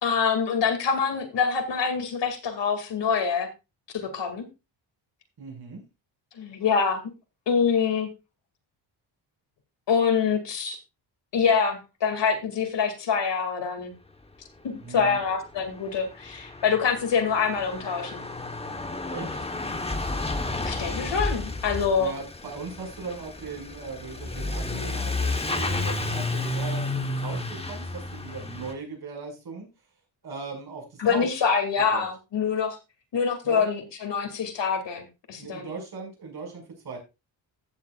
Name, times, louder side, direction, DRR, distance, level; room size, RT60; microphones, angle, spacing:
voice 1, 0.0-3.5 3.9-4.4 6.4-7.0 7.5-8.1 9.9-10.8 11.3-13.9 14.6-18.2 20.6-22.1 31.0-32.8 33.1-35.7, left 6 dB, 60° left, 6 dB, 2.4 m, -25 dB
voice 2, 5.4-5.8 14.8-15.2 19.1-19.4 22.0-29.7 30.2-31.4 31.8-32.1 33.4-33.6 35.4-37.0, right 4 dB, 50° right, 1 dB, 5.5 m, -38 dB
Truck / Accelerating revving vroom, 15.1-15.2 15.3-28.7, left 2 dB, 10° left, 1.1 m, -31 dB
15.0 x 7.4 x 2.4 m, 0.26 s
cardioid pair, 110°, 47 cm